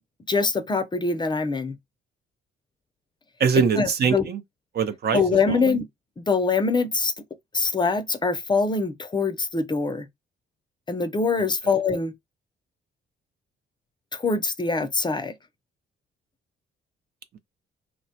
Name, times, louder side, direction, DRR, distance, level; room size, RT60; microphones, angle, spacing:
voice 1, 0.3-1.8 3.7-4.3 5.1-5.9 6.3-7.1 7.5-10.1 10.9-12.1 14.2-15.3, left 4 dB, 20° left, 0.5 m, -23 dB
voice 2, 3.4-4.4 4.7-5.2 5.5-5.8 11.4-11.5, right 6 dB, 55° right, 0.5 m, -23 dB
3.0 x 2.1 x 2.7 m
cardioid pair, 90°, 20 cm